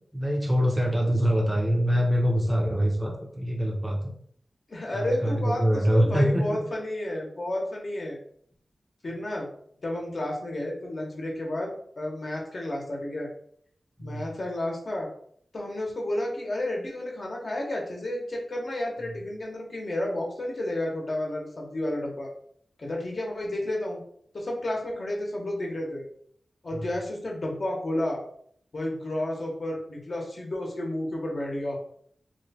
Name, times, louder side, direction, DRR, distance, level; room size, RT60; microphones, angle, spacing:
voice 1, 0.1-4.0 4.9-6.6 14.0-14.3 26.7-26.9, equal, 10° right, 1 dB, 0.6 m, -24 dB
voice 2, 4.7-8.2 9.0-9.5 9.8-13.3 14.0-15.1 15.5-22.3 22.8-24.0 24.3-26.0 26.6-28.2 28.7-31.8, left 1 dB, 50° left, -1 dB, 0.9 m, -31 dB
3.0 x 2.2 x 4.0 m, 0.65 s
wide cardioid pair, 105°, 0 cm